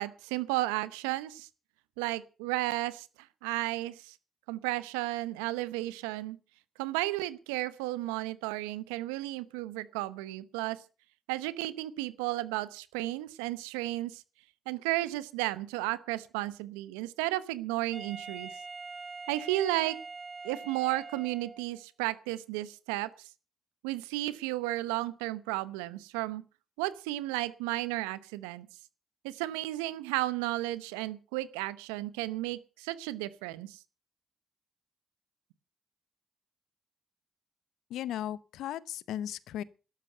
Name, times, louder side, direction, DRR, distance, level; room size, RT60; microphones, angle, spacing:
voice 1, 0.0-1.5 2.0-3.1 3.4-4.1 4.5-6.4 6.8-10.8 11.3-14.2 14.7-18.5 19.3-20.0 20.4-23.1 23.8-26.4 26.8-28.7 29.2-33.8, right 17 dB, 90° right, 0.9 m, -33 dB
Wind instrument woodwind instrument, 17.9-21.8, right 4 dB, 45° right, 5.3 m, -44 dB
voice 2, 37.9-39.6, left 11 dB, 75° left, 0.8 m, -36 dB
12.5 x 12.5 x 6.7 m
hypercardioid pair, 45°, 0 cm